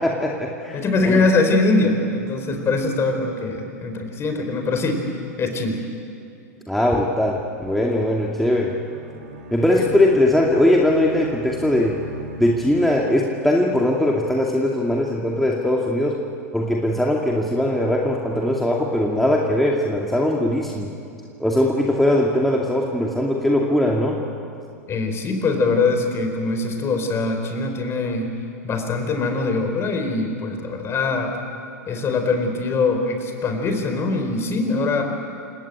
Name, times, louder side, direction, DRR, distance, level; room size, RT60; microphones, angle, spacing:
voice 1, 0.0-1.2 6.7-8.8 9.5-12.0 12.4-16.2 16.5-20.9 21.4-24.2, left 1 dB, ahead, -2 dB, 2.4 m, -20 dB
voice 2, 0.7-5.0 5.4-5.8 9.7-9.9 24.9-28.3 28.6-31.4 31.9-35.0, left 3 dB, 30° left, 5 dB, 4.7 m, -22 dB
Bowed string instrument, 8.8-13.3, right 1 dB, 65° right, 5.1 m, -38 dB
29.0 x 18.0 x 8.9 m, 2.5 s
hypercardioid pair, 95°, 9 cm